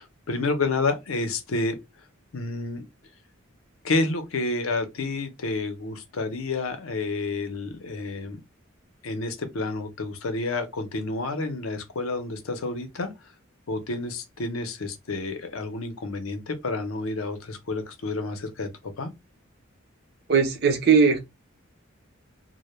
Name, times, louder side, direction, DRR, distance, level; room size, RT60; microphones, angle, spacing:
voice 1, 0.0-1.7 2.3-2.8 3.8-8.4 9.0-13.1 13.7-18.7 19.0-19.1, left 3 dB, 80° left, 0.6 m, -29 dB
voice 2, 20.3-21.2, right 5 dB, 50° right, 0.6 m, -19 dB
2.1 x 2.1 x 3.0 m
head